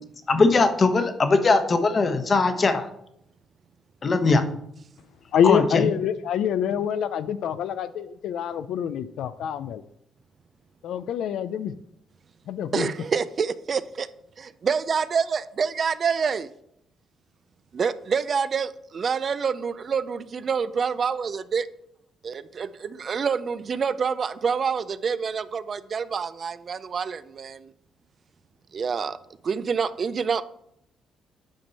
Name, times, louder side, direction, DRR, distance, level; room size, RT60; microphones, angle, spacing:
voice 1, 0.3-2.9 4.0-4.4 5.4-5.8, left 3 dB, 40° left, 8 dB, 1.1 m, -20 dB
voice 2, 5.3-9.8 10.8-11.7 12.5-12.9, left 8 dB, 80° left, 13 dB, 0.4 m, -25 dB
voice 3, 12.7-14.1 14.4-16.5 17.7-21.7 22.2-27.7 28.7-29.2 29.4-30.4, right 6 dB, 45° right, 14 dB, 0.4 m, -27 dB
8.9 x 5.3 x 4.1 m, 0.74 s
cardioid pair, 90°, 0 cm